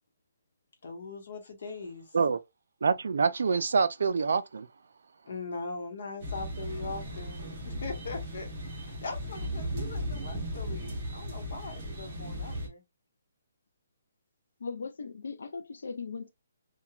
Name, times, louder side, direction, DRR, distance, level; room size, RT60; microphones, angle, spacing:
voice 1, 0.8-2.1 5.2-12.8, left 3 dB, 50° left, 1.0 m, -41 dB
voice 2, 2.8-4.7, right 5 dB, 60° right, 0.3 m, -26 dB
sound 1, 6.2-12.7, equal, 25° right, 0.9 m, -36 dB
voice 3, 14.6-16.3, left 4 dB, 65° left, 0.3 m, -38 dB
2.9 x 2.2 x 2.3 m
hypercardioid pair, 180°, 0 cm